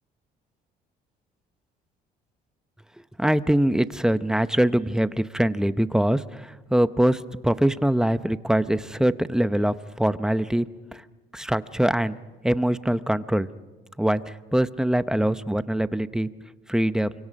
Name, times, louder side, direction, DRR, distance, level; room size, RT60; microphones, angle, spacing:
voice 1, 3.2-10.7 10.9-11.0 11.3-12.2 12.4-13.5 14.0-16.3 16.7-17.1, right 1 dB, 5° right, 13 dB, 0.7 m, -23 dB
29.5 x 25.0 x 5.3 m, 1.2 s
cardioid pair, 110°, 17 cm